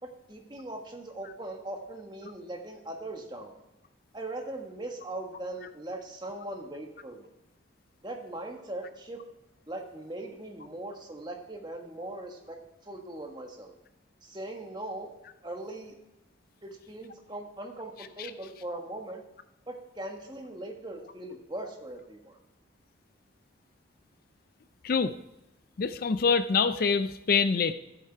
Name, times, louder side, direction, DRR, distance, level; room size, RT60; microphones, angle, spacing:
voice 1, 0.0-3.5 4.1-7.3 8.0-9.2 9.7-13.7 14.2-15.1 15.4-15.9 16.6-19.2 19.7-22.4, right 1 dB, 20° right, 2 dB, 1.4 m, -40 dB
voice 2, 25.8-27.7, left 5 dB, 50° left, 12 dB, 0.4 m, -25 dB
13.5 x 8.0 x 4.5 m, 0.97 s
head